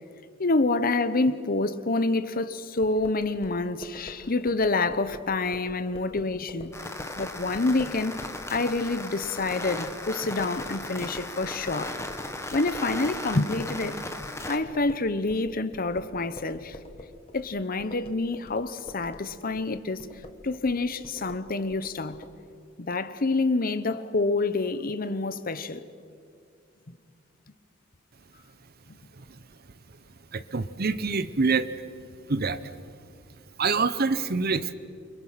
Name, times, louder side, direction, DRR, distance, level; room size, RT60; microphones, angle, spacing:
voice 1, 0.4-6.7 7.2-8.1 8.5-12.0 12.5-14.0 14.5-16.8 17.3-20.1 20.4-22.2 22.8-25.8, left 3 dB, 45° left, 0.9 m, -27 dB
sound 1, 2.8-13.3 13.6-22.3, left 1 dB, 30° left, 1.7 m, -46 dB
sound 2, 6.7-14.6, left 2 dB, 15° left, 1.4 m, -37 dB
voice 2, 30.3-31.7 32.3-32.6 33.6-34.7, right 4 dB, 50° right, 0.9 m, -26 dB
28.5 x 24.5 x 5.8 m
head